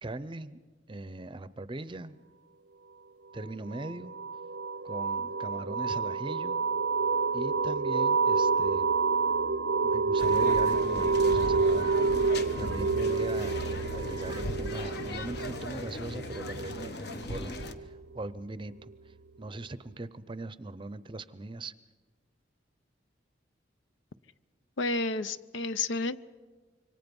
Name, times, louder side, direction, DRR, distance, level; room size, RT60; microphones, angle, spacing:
voice 1, 0.0-0.6 0.9-2.2 3.3-4.1 4.8-6.6 7.3-8.9 9.8-12.2 12.6-21.7, right 2 dB, 25° right, 15 dB, 0.6 m, -40 dB
sound 1, 3.7-18.2, right 4 dB, 65° right, 0.6 m, -28 dB
sound 2, 10.2-17.7, left 1 dB, 60° left, 1.2 m, -38 dB
voice 2, 24.8-26.2, left 3 dB, 75° left, 15 dB, 0.6 m, -30 dB
26.5 x 24.5 x 5.4 m, 1.4 s
head